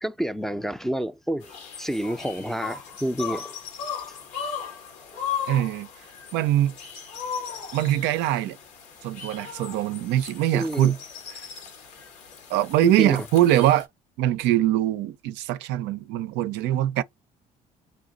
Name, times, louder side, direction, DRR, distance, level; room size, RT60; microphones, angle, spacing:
voice 1, 0.0-1.5 1.8-3.6 10.5-10.9 12.8-13.3, right 1 dB, ahead, 0.5 m, -28 dB
sound 1, 1.4-13.8, left 7 dB, 80° left, 1.3 m, -37 dB
voice 2, 5.5-5.9 6.3-6.7 7.7-8.6 9.0-11.0 12.5-13.9 14.2-17.0, right 13 dB, 75° right, 0.4 m, -22 dB
3.4 x 2.6 x 3.8 m
hypercardioid pair, 60°, 18 cm